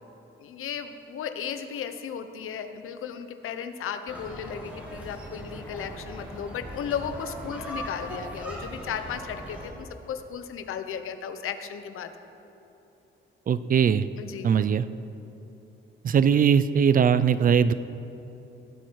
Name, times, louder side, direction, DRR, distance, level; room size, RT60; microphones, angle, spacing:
voice 1, 0.4-12.1 14.2-14.5, left 7 dB, 90° left, 9 dB, 0.9 m, -35 dB
sound 1, 4.1-9.7, equal, 5° right, 2.7 m, -39 dB
voice 2, 13.5-14.1 14.4-14.8 16.0-17.7, right 7 dB, 40° right, 14 dB, 0.4 m, -20 dB
18.5 x 11.5 x 4.7 m, 3.0 s
wide cardioid pair, 160°, 21 cm